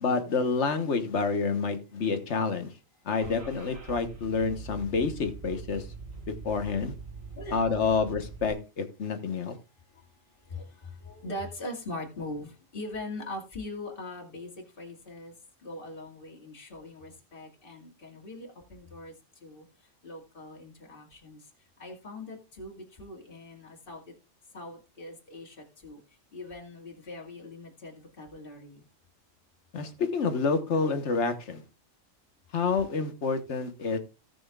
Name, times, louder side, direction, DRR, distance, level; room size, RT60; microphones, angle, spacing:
voice 1, 0.0-2.7 3.0-5.9 6.4-6.9 7.5-9.6 29.7-31.6 32.5-34.0, left 4 dB, 65° left, 8 dB, 1.5 m, -28 dB
Car / Engine starting, 3.1-8.5, right 4 dB, 85° right, 2.9 m, -43 dB
voice 2, 7.4-8.1 9.9-10.1 10.4-15.3 15.6-19.1 19.4-19.6 20.0-21.5 21.8-24.1 24.5-26.0 26.3-28.8, left 1 dB, 45° left, 0 dB, 2.3 m, -41 dB
17.5 x 6.2 x 2.4 m, 0.31 s
omnidirectional pair, 1.3 m